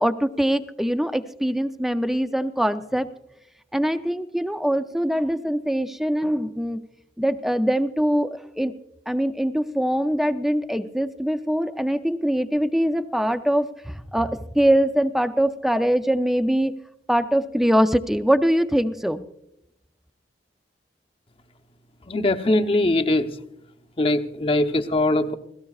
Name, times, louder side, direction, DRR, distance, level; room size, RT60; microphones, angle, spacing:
voice 1, 0.0-3.1 3.7-6.8 7.2-8.7 9.1-16.7 17.1-19.2, equal, ahead, 9 dB, 0.5 m, -23 dB
voice 2, 22.1-23.3 24.0-25.3, left 2 dB, 30° left, 7 dB, 0.8 m, -21 dB
28.0 x 17.0 x 2.4 m, 0.83 s
head